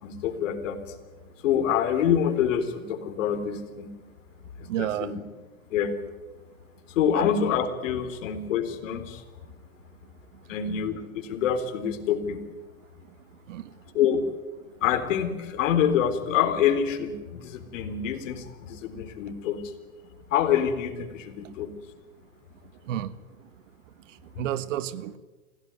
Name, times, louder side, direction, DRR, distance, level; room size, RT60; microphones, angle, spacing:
voice 1, 0.0-0.8 1.4-4.0 4.6-5.2 5.7-6.0 6.9-9.2 10.5-12.4 13.9-14.2 14.8-19.7 20.3-21.7, left 8 dB, 60° left, 9 dB, 3.8 m, -26 dB
voice 2, 4.7-5.1 7.1-7.2 13.5-13.7 22.9-23.1 24.4-25.2, right 12 dB, 60° right, 15 dB, 1.5 m, -30 dB
27.5 x 17.0 x 9.7 m, 1.3 s
hypercardioid pair, 130°, 42 cm